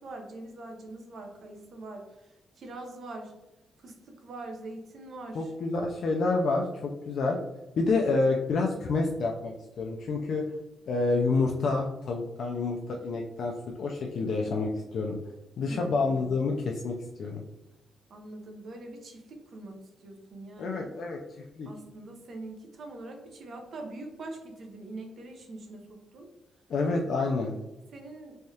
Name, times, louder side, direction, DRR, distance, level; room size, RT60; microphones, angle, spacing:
voice 1, 0.0-3.3 3.8-5.5 7.9-8.1 15.6-16.3 18.1-20.9 21.6-26.3 27.9-28.4, right 2 dB, 55° right, 3 dB, 0.7 m, -43 dB
voice 2, 5.3-7.4 7.8-10.4 10.9-15.2 15.6-17.4 20.6-21.2 21.6-21.7 26.7-27.6, left 3 dB, 60° left, 0 dB, 0.4 m, -28 dB
3.5 x 3.3 x 2.7 m, 0.99 s
wide cardioid pair, 145°, 0 cm